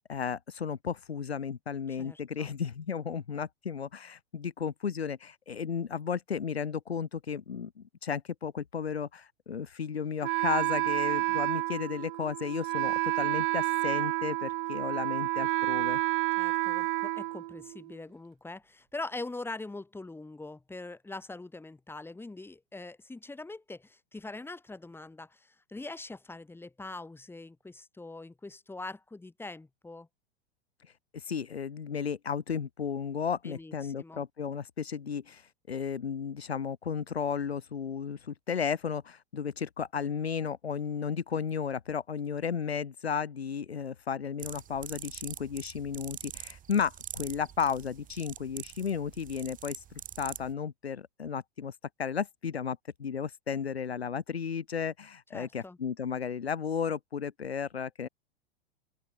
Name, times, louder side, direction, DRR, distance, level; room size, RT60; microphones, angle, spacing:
voice 1, 0.1-16.0 31.1-49.8 50.2-51.7 52.0-58.1, left 7 dB, 90° left, 1.3 m, -34 dB
voice 2, 1.9-2.5 16.4-30.1 33.4-34.2 55.3-55.8, left 2 dB, 5° left, 4.8 m, -43 dB
Wind instrument woodwind instrument, 10.2-18.0, right 21 dB, 55° right, 3.0 m, -30 dB
sound 1, 44.4-50.5, right 10 dB, 25° right, 2.5 m, -45 dB
open air
hypercardioid pair, 100°, 31 cm